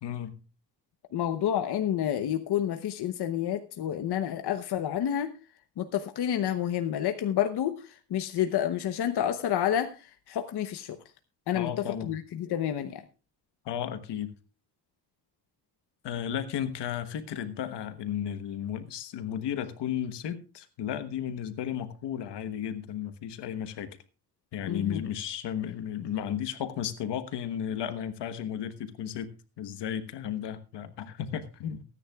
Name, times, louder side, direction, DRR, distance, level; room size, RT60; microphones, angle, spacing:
voice 1, 0.0-0.4 11.5-12.1 13.6-14.3 16.0-23.9 24.5-29.3 29.6-31.8, left 9 dB, 85° left, 10 dB, 1.3 m, -34 dB
voice 2, 1.1-5.3 5.8-7.8 8.1-10.0 10.3-11.0 11.5-11.7 12.0-13.0 24.7-25.0, left 10 dB, 70° left, 8 dB, 1.0 m, -29 dB
22.5 x 9.9 x 2.4 m, 0.32 s
cardioid pair, 100°, 41 cm